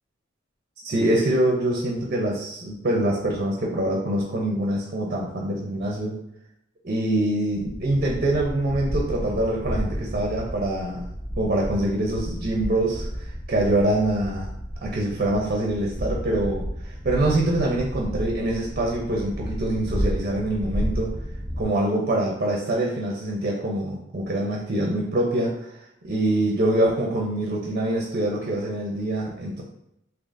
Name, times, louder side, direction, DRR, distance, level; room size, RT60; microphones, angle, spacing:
voice 1, 0.8-6.2 6.8-14.5 14.8-21.2 21.6-25.8 26.0-29.6, right 1 dB, 45° right, -1 dB, 0.6 m, -25 dB
sound 1, 7.5-21.6, equal, 10° left, 0.4 m, -32 dB
3.9 x 2.8 x 2.5 m, 0.79 s
head